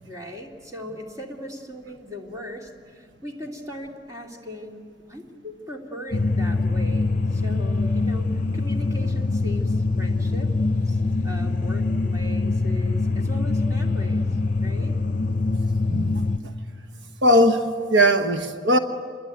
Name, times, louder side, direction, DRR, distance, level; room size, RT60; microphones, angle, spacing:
voice 1, 0.1-10.5 10.8-14.2 14.6-15.0, left 1 dB, 20° right, 1 dB, 2.8 m, -38 dB
sound 1, 6.1-16.4, left 3 dB, 45° left, 0.8 m, -24 dB
voice 2, 17.2-18.8, equal, 75° right, 8 dB, 1.3 m, -19 dB
28.0 x 22.5 x 9.3 m, 2.1 s
head